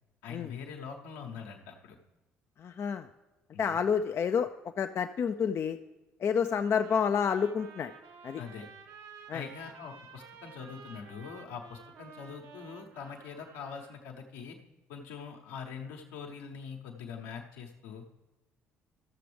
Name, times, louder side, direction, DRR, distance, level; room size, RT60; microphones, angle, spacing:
voice 1, 0.2-2.0 3.5-3.8 8.4-8.7 9.3-14.6 14.9-18.0, left 6 dB, 75° left, 2 dB, 1.0 m, -43 dB
voice 2, 2.6-3.1 3.6-4.5 4.8-5.8 6.2-7.9 8.2-8.4 9.3-9.4, left 7 dB, 40° left, 7 dB, 0.4 m, -29 dB
Trumpet, 6.6-14.0, right 6 dB, 60° right, 0.9 m, -52 dB
14.0 x 6.7 x 3.3 m, 1.1 s
hypercardioid pair, 50°, 6 cm